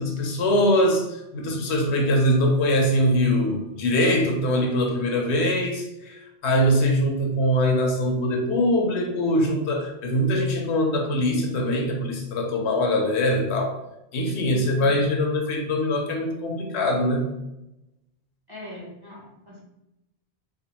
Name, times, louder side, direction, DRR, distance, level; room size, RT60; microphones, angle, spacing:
voice 1, 0.0-13.8 14.1-17.3, left 1 dB, 85° left, 2 dB, 0.9 m, -22 dB
voice 2, 14.4-15.0 18.5-19.6, left 2 dB, 30° right, -5 dB, 0.4 m, -41 dB
2.4 x 2.2 x 2.8 m, 0.89 s
omnidirectional pair, 1.1 m